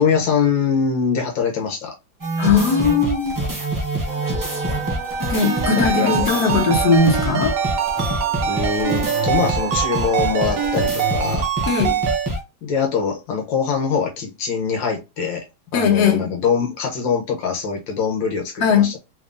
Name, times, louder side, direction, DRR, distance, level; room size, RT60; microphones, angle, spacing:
voice 1, 0.0-1.9 5.7-6.2 8.4-11.5 12.6-15.4 15.7-19.0, left 6 dB, 75° left, 1.6 m, -23 dB
sound 1, 2.2-12.4, equal, 30° right, 0.3 m, -25 dB
voice 2, 2.4-3.3 5.3-7.5 11.7-12.0 15.7-16.3 18.6-18.9, left 5 dB, 60° left, 1.4 m, -18 dB
sound 2, 4.1-10.9, right 7 dB, 90° right, 0.7 m, -31 dB
Ringtone, 5.4-12.3, right 8 dB, 60° right, 0.9 m, -24 dB
3.6 x 3.4 x 2.5 m
omnidirectional pair, 2.1 m